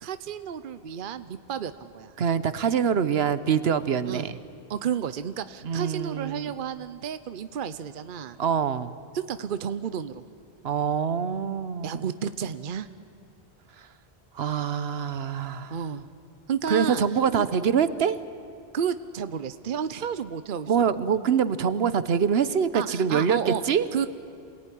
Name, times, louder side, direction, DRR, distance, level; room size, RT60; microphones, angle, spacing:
voice 1, 0.0-2.1 4.0-4.3 4.7-8.4 9.1-10.2 11.8-12.9 15.7-16.1 16.5-17.0 17.3-17.5 18.7-21.2 22.7-23.6 23.9-24.1, right 8 dB, 60° right, 12 dB, 0.9 m, -32 dB
voice 2, 2.2-4.4 5.6-6.6 8.4-9.0 10.6-12.1 13.8-13.9 14.3-15.7 16.7-18.2 20.7-23.9, right 7 dB, 80° right, 14 dB, 1.1 m, -25 dB
27.5 x 18.5 x 10.0 m, 2.5 s
omnidirectional pair, 1.0 m